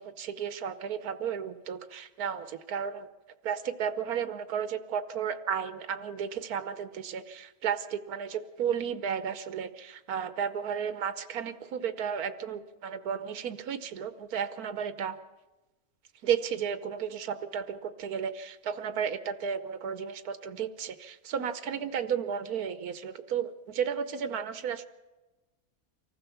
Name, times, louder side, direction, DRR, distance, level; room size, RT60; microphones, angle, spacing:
voice 1, 0.0-3.1 3.4-15.2 16.2-24.9, right 7 dB, 85° right, 12 dB, 1.4 m, -33 dB
25.0 x 15.0 x 7.0 m, 1.1 s
omnidirectional pair, 1.5 m